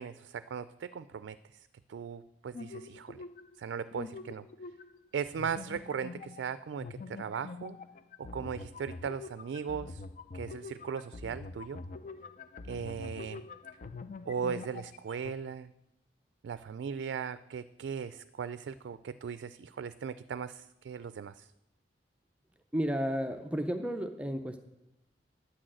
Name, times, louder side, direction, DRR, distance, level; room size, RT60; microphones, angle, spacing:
voice 1, 0.0-3.2 3.6-4.4 5.1-7.8 8.2-10.0 10.3-11.8 12.7-13.4 14.3-15.7 16.4-21.5, right 6 dB, 85° right, 14 dB, 0.3 m, -38 dB
sound 1, 2.5-3.6 3.9-5.1 5.4-15.3, left 3 dB, 45° left, 0.4 m, -45 dB
voice 2, 22.7-24.6, equal, 5° right, 6 dB, 0.5 m, -32 dB
9.6 x 6.3 x 7.6 m, 0.89 s
head